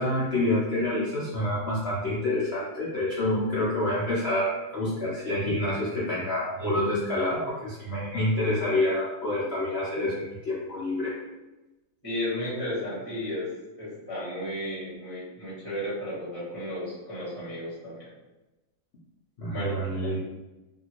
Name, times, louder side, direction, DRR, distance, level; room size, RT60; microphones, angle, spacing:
voice 1, 0.0-11.1 19.4-20.3, left 1 dB, 75° left, -8 dB, 0.5 m, -27 dB
voice 2, 12.0-13.5 13.8-18.1 19.5-20.2, left 1 dB, 15° left, -10 dB, 0.8 m, -34 dB
2.8 x 2.6 x 2.8 m, 1.0 s
omnidirectional pair, 2.0 m